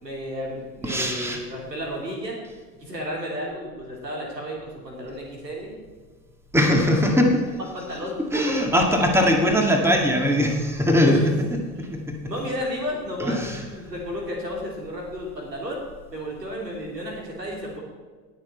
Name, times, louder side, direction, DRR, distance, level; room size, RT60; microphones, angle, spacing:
voice 1, 0.0-2.4 2.8-5.8 6.8-6.9 7.7-8.4 11.0-11.2 11.7-11.9 12.3-15.8 16.1-17.8, equal, 85° right, -1 dB, 3.3 m, -32 dB
voice 2, 0.8-1.4 6.5-7.4 8.3-11.3 11.8-12.2 13.2-13.6, equal, 5° right, 2 dB, 2.0 m, -20 dB
19.5 x 6.7 x 4.5 m, 1.4 s
figure-of-eight pair, 80°, 48 cm